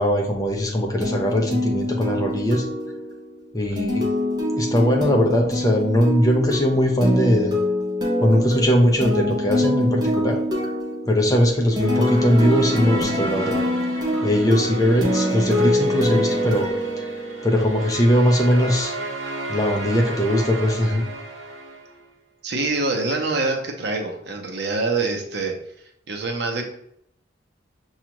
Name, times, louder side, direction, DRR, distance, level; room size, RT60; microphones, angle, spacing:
voice 1, 0.0-2.7 3.5-4.0 4.6-7.6 8.2-10.4 11.1-13.6 14.2-17.1 17.4-18.9 19.5-21.0, equal, 20° left, 1 dB, 0.6 m, -20 dB
sound 1, 1.0-17.7, left 1 dB, 20° right, 0.7 m, -25 dB
sound 2, 11.6-22.0, right 2 dB, 75° right, 1.0 m, -32 dB
voice 2, 22.4-25.5 26.1-26.7, right 3 dB, 60° right, 2 dB, 0.7 m, -25 dB
6.1 x 2.4 x 2.9 m, 0.71 s
head